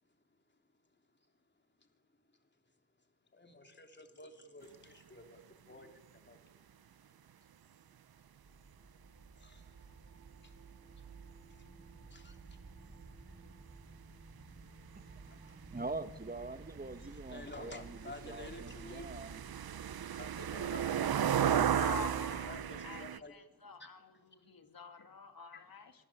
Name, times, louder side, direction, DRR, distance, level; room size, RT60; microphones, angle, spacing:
voice 1, 3.3-7.5 8.8-9.0 9.3-10.1 10.4-11.2 11.5-12.6 13.3-13.4 15.3-15.4 17.0-19.1 20.2-22.0 22.5-23.3 23.8-23.9 25.5-25.9, left 2 dB, 30° left, 3.3 m, -53 dB
sound 1, 8.2-22.8, right 3 dB, 55° right, 6.6 m, -55 dB
voice 2, 14.9-19.4, right 3 dB, 25° right, 1.6 m, -44 dB
sound 2, 15.2-15.3 15.5-23.2, right 9 dB, 70° right, 0.9 m, -34 dB
voice 3, 21.7-22.6 22.8-24.0 24.3-25.9, left 3 dB, 65° left, 2.9 m, -46 dB
26.0 x 20.0 x 8.7 m
wide cardioid pair, 85°, 38 cm